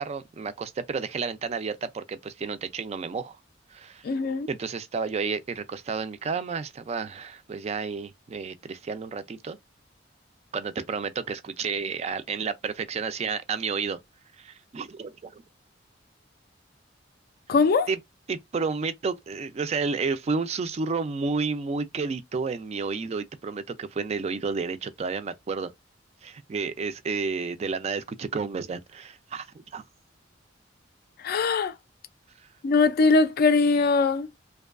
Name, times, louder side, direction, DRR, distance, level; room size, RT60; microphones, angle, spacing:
voice 1, 0.0-3.4 3.7-4.0 4.5-9.6 10.5-14.0 14.4-15.4 17.9-18.0 18.3-25.7 26.2-29.8, right 5 dB, 35° right, 0.3 m, -31 dB
voice 2, 4.0-4.5 17.5-17.9 31.2-31.7 32.6-34.3, left 4 dB, 55° left, 0.3 m, -21 dB
2.6 x 2.2 x 2.3 m
head